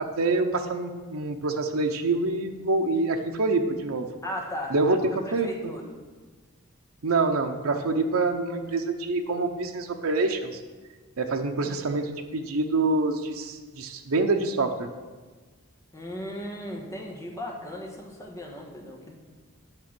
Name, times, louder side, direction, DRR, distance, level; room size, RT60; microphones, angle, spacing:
voice 1, 0.0-4.1 4.7-5.7 7.0-10.6 11.2-14.9, right 3 dB, 85° right, 4 dB, 0.7 m, -26 dB
voice 2, 4.2-4.7 5.4-5.9 11.6-11.8 15.9-19.1, left 1 dB, 15° left, 0 dB, 1.3 m, -36 dB
8.9 x 5.8 x 6.0 m, 1.4 s
head